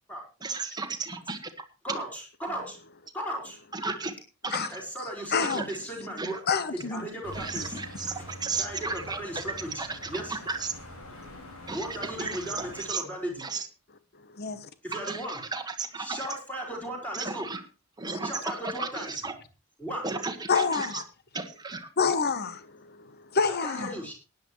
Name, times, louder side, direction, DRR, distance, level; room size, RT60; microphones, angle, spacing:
voice 1, 0.4-2.0 3.7-4.2 4.4-4.8 5.4-5.8 6.2-6.4 7.3-10.7 11.7-13.0 13.4-13.7 14.9-16.4 17.1-17.6 18.0-19.4 20.0-21.0 21.3-21.9, right 4 dB, 20° right, 1.5 m, -34 dB
voice 2, 1.8-2.8 3.1-3.6 4.7-7.7 8.6-9.8 10.1-10.4 11.7-13.3 14.8-15.4 16.0-17.5 18.2-19.1 19.8-20.1 23.6-24.1, right 1 dB, 5° left, 4.9 m, -36 dB
voice 3, 5.3-5.7 6.5-7.1 11.2-11.3 14.1-14.7 20.5-21.0 22.0-24.0, left 5 dB, 50° left, 0.9 m, -28 dB
sound 1, 7.2-12.9, left 1 dB, 75° left, 5.0 m, -44 dB
18.5 x 10.5 x 3.1 m
head